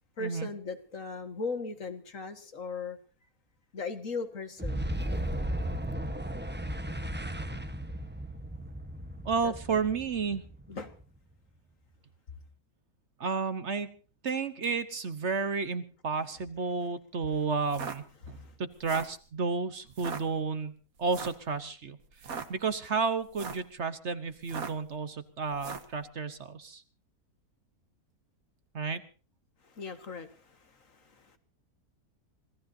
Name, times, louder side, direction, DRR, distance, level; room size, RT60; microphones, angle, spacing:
voice 1, 0.2-3.0 3.7-4.9 9.4-9.8 10.7-10.9 18.3-18.5 29.6-31.4, left 4 dB, 60° left, 8 dB, 2.1 m, -38 dB
Boom, 4.6-11.2, right 1 dB, 10° right, 0.9 m, -35 dB
voice 2, 9.2-10.4 13.2-13.9 14.2-26.8 28.7-29.0, right 5 dB, 50° right, 12 dB, 1.3 m, -32 dB
sound 1, 17.6-18.0 18.7-19.2 19.9-20.2 21.1-21.4 22.1-22.5 23.2-23.7 24.4-24.9 25.6-25.9, right 5 dB, 70° right, 1.9 m, -39 dB
26.5 x 17.0 x 2.7 m, 0.37 s
omnidirectional pair, 1.6 m